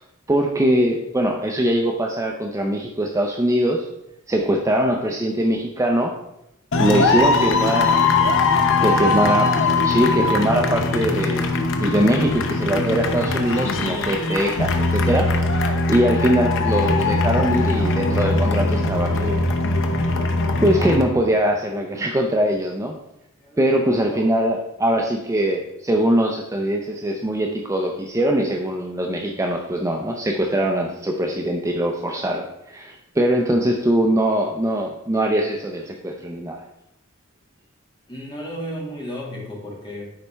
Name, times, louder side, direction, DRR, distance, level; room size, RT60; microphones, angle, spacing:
voice 1, 0.3-3.9 4.3-6.1 6.8-8.0 8.8-9.5 9.8-11.5 11.8-15.3 15.9-19.4 19.9-20.3 20.6-22.9 23.6-36.6, right 1 dB, 15° right, 1 dB, 0.5 m, -22 dB
sound 1, 6.7-21.0, left 3 dB, 60° left, 0.8 m, -21 dB
voice 2, 9.0-9.4 23.4-24.3 27.2-27.4 38.1-40.1, equal, 20° left, -3 dB, 1.9 m, -36 dB
9.7 x 4.2 x 3.4 m, 0.84 s
head